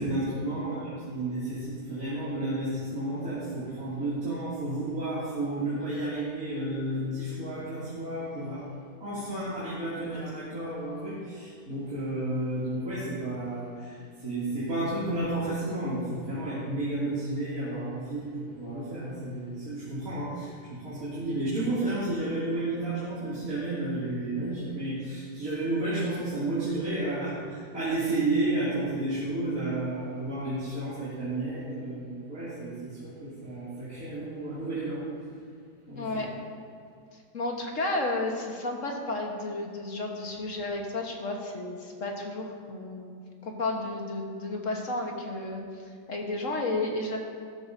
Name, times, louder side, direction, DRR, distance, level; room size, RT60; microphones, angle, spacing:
voice 1, 0.0-8.6 9.0-35.0 35.9-36.3, right 2 dB, 45° right, -11 dB, 3.0 m, -32 dB
voice 2, 36.0-36.3 37.3-43.1 43.4-45.6 46.1-47.2, left 2 dB, 45° left, 1 dB, 1.4 m, -32 dB
14.0 x 13.0 x 2.7 m, 2.3 s
omnidirectional pair, 2.2 m